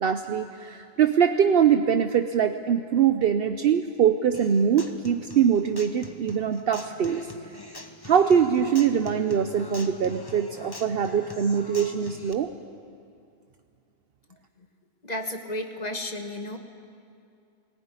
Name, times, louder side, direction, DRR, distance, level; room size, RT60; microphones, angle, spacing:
voice 1, 0.0-7.3 8.0-12.5, right 8 dB, 65° right, 8 dB, 0.9 m, -23 dB
Human voice / Acoustic guitar, 4.3-12.3, left 2 dB, 25° left, 1.1 m, -43 dB
voice 2, 15.0-16.6, left 1 dB, 40° left, 5 dB, 1.5 m, -33 dB
19.0 x 19.0 x 9.7 m, 2.4 s
omnidirectional pair, 1.0 m